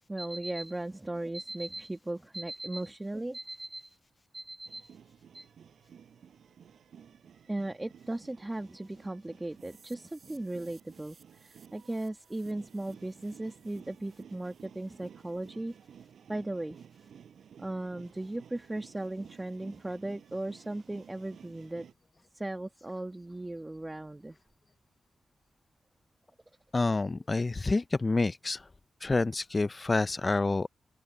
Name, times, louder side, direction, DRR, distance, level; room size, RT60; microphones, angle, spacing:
voice 1, 0.1-4.0 4.3-5.0 5.3-5.5 7.5-15.8 16.3-16.8 17.6-21.9 22.3-24.4, right 2 dB, 20° right, 1.7 m, -37 dB
sound 1, 4.6-21.9, right 8 dB, 75° right, 5.8 m, -55 dB
sound 2, 9.6-15.5, right 5 dB, 55° right, 6.4 m, -63 dB
voice 2, 26.7-28.7 29.0-30.7, left 3 dB, 35° left, 0.5 m, -28 dB
open air
cardioid pair, 55°, 0 cm